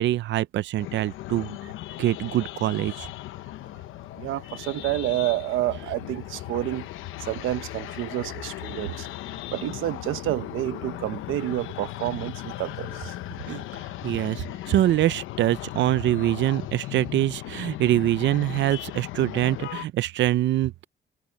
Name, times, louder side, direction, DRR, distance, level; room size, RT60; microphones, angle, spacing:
voice 1, 0.0-1.6 2.0-3.1 13.5-13.6 14.0-20.8, right 14 dB, 70° right, 0.5 m, -24 dB
sound 1, 0.8-19.9, left 16 dB, 90° left, 0.8 m, -37 dB
voice 2, 4.2-6.9 7.2-9.1 9.5-13.1, right 15 dB, 90° right, 1.1 m, -29 dB
cardioid pair, 90°, 20 cm